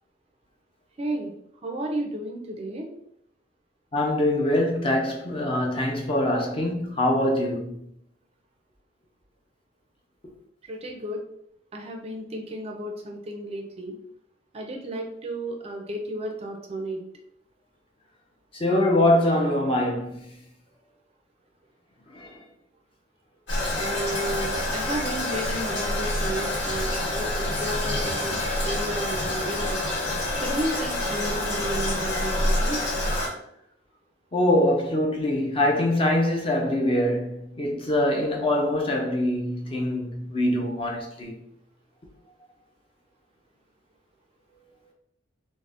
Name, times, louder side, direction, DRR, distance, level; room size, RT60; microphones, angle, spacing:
voice 1, 1.0-1.3 1.6-2.9 10.7-11.2 11.7-14.0 14.5-17.0 23.8-28.3 28.6-29.8 30.4-32.8, right 1 dB, 35° right, 0.4 m, -33 dB
voice 2, 3.9-7.8 18.5-20.2 22.2-22.3 34.3-41.3, left 1 dB, 30° left, 0.5 m, -23 dB
Toilet flush, 23.5-33.3, left 1 dB, 90° left, 1.0 m, -27 dB
2.4 x 2.0 x 3.4 m
head